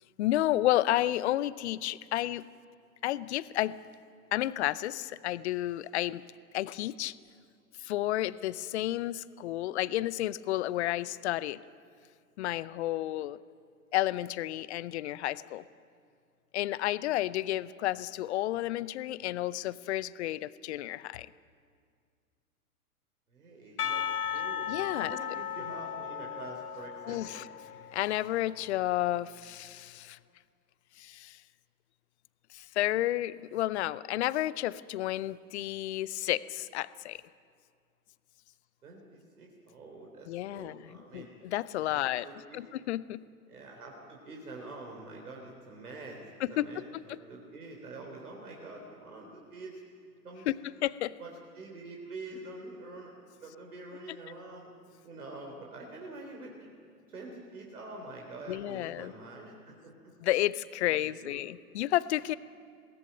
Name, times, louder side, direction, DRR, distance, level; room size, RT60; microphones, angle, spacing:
voice 1, 0.2-2.5 3.0-3.8 4.3-6.2 6.5-7.1 7.8-11.6 12.4-13.4 13.9-15.6 16.5-21.3 24.7-25.2 27.1-27.4 27.9-30.2 31.0-31.4 32.5-37.2 40.3-42.2 42.5-43.2 46.6-47.2 50.5-50.6 50.8-51.1 58.5-59.1 60.2-62.3, left 15 dB, 45° left, 18 dB, 0.7 m, -31 dB
voice 2, 23.3-24.0 24.3-24.7 25.0-27.5 38.8-41.3 41.9-42.6 43.5-46.2 46.5-49.8 50.2-50.5 51.2-54.7 55.0-56.7 57.1-60.1 60.9-61.4, right 2 dB, 70° right, 0 dB, 3.8 m, -46 dB
Percussion / Church bell, 23.8-28.8, left 8 dB, 75° left, 1.0 m, -36 dB
22.0 x 17.5 x 9.0 m, 2.1 s
figure-of-eight pair, 100°, 46 cm